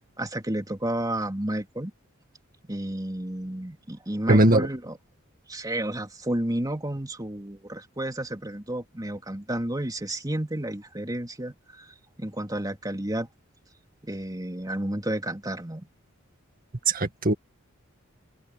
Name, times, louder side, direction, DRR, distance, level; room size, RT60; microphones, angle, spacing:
voice 1, 0.2-1.9 2.7-5.0 5.5-13.3 14.0-15.9, right 1 dB, 20° right, 3.3 m, -31 dB
voice 2, 4.3-4.7 16.9-17.3, right 2 dB, 45° right, 2.1 m, -19 dB
open air
head